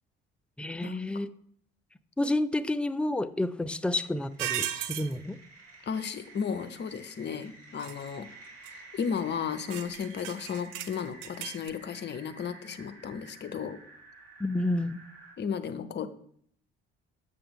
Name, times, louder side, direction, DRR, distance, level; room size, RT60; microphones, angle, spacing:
voice 1, 0.6-1.3 2.2-5.4 14.4-15.0, left 1 dB, 5° left, 13 dB, 0.3 m, -30 dB
sound 1, 3.4-15.3, right 3 dB, 50° right, 2.8 m, -52 dB
sound 2, 4.4-5.1 7.8-8.1 8.6-8.7 9.0-9.2 9.7-11.7, right 12 dB, 65° right, 0.6 m, -36 dB
voice 2, 5.9-8.3 8.7-13.8 15.4-16.1, left 7 dB, 35° left, 10 dB, 0.7 m, -34 dB
6.9 x 6.6 x 3.6 m, 0.62 s
figure-of-eight pair, 50°, 31 cm